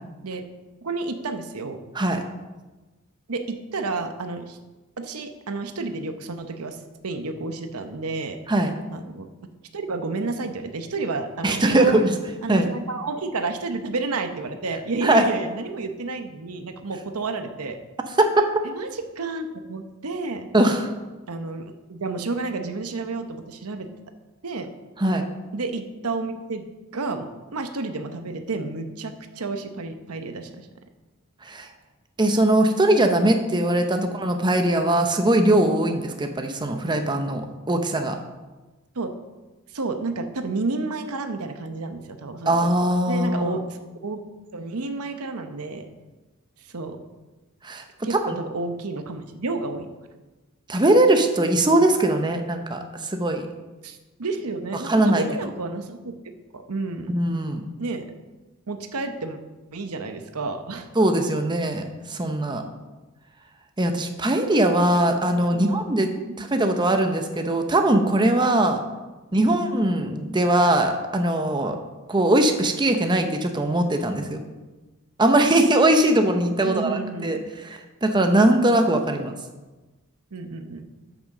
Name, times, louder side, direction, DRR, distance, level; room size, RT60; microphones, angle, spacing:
voice 1, 0.8-1.8 3.3-4.6 5.0-6.8 7.0-8.4 8.9-9.3 9.7-12.0 12.4-17.8 18.6-18.9 19.2-20.5 21.3-23.9 24.4-24.7 25.5-26.7 26.9-27.3 27.5-30.7 34.0-34.1 39.0-39.1 39.7-42.6 43.1-44.2 44.5-45.9 46.7-47.0 48.0-49.9 53.8-56.1 56.5-57.1 57.8-58.0 58.7-59.4 59.7-60.9 65.6-65.8 66.4-66.5 69.4-69.6 76.6-77.3 79.1-79.2 80.3-80.8, right 3 dB, 85° right, 7 dB, 0.9 m, -30 dB
voice 2, 11.4-12.2 12.5-12.7 15.0-15.2 18.2-18.4 20.5-20.9 25.0-25.3 31.4-31.7 32.2-38.2 42.5-43.6 47.6-48.2 50.7-53.5 54.7-55.2 57.1-57.6 60.9-62.6 63.8-66.1 66.4-68.8 69.3-71.8 72.1-74.4 75.2-79.3, right 1 dB, 20° right, 5 dB, 0.7 m, -21 dB
8.8 x 6.1 x 6.5 m, 1.2 s
head